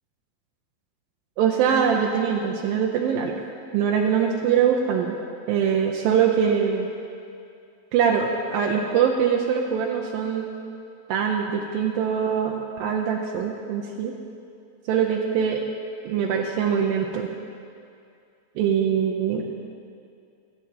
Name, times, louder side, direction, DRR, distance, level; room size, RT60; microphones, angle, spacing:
voice 1, 1.4-3.3 3.7-5.2 5.5-6.9 7.9-10.5 11.1-14.1 14.9-15.6 16.1-17.3 18.6-19.5, right 7 dB, 80° right, 0 dB, 2.3 m, -23 dB
22.5 x 8.7 x 2.8 m, 2.4 s
omnidirectional pair, 4.3 m